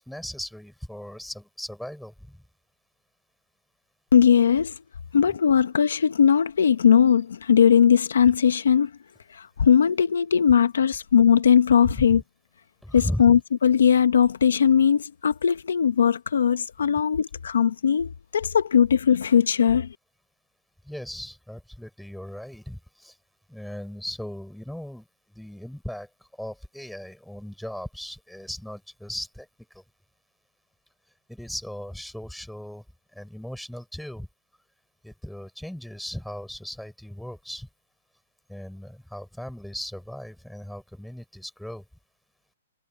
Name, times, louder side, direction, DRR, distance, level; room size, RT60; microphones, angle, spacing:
voice 1, 0.0-2.4 12.0-12.2 12.8-13.4 20.8-23.2 23.5-26.1 26.4-29.5 29.7-29.8 31.3-32.8 33.1-34.3 35.0-37.7 38.5-41.8, equal, ahead, 5.6 m, -37 dB
voice 2, 4.1-4.7 5.1-8.9 9.3-12.2 12.9-19.9, left 8 dB, 65° left, 1.0 m, -19 dB
hypercardioid pair, 180°, 0 cm